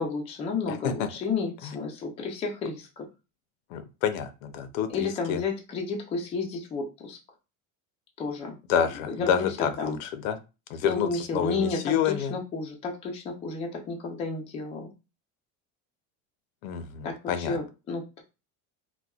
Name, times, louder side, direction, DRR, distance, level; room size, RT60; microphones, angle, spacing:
voice 1, 0.0-3.1 4.9-7.2 8.2-8.6 9.1-10.0 10.8-14.9 17.0-18.2, left 4 dB, 15° left, 1 dB, 0.4 m, -32 dB
voice 2, 0.7-1.1 3.7-5.4 8.7-10.4 10.7-12.3 16.6-17.6, left 8 dB, 80° left, 10 dB, 0.7 m, -28 dB
4.1 x 2.2 x 2.3 m, 0.29 s
cardioid pair, 160°, 41 cm